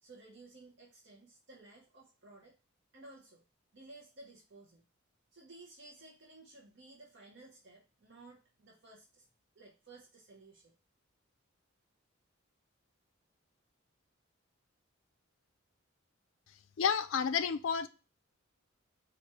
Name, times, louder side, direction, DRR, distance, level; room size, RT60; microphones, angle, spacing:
voice 1, 0.0-2.5 2.9-3.4 3.7-4.8 5.3-9.2 9.5-10.7, right 2 dB, 55° right, 0.8 m, -56 dB
voice 2, 16.8-17.9, left 7 dB, 70° left, 0.4 m, -30 dB
4.3 x 2.5 x 4.7 m
head